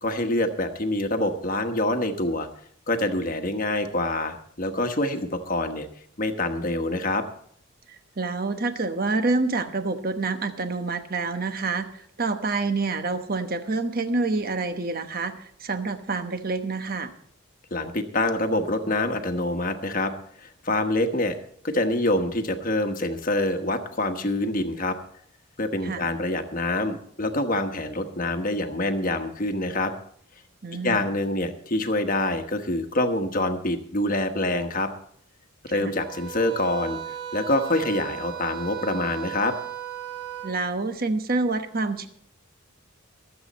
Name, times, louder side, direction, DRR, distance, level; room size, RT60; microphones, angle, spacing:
voice 1, 0.0-2.5 2.9-5.9 6.2-7.2 17.7-20.1 20.4-21.4 21.6-25.0 25.6-29.9 30.8-34.9 35.6-37.0 37.3-39.5, left 1 dB, 40° left, 7 dB, 1.2 m, -26 dB
voice 2, 7.9-17.1 25.8-26.1 30.6-31.1 35.7-35.9 40.4-42.1, right 3 dB, 45° right, 8 dB, 1.1 m, -27 dB
sound 1, 36.0-40.5, right 10 dB, 85° right, 6.3 m, -36 dB
23.0 x 8.0 x 4.2 m, 0.62 s
head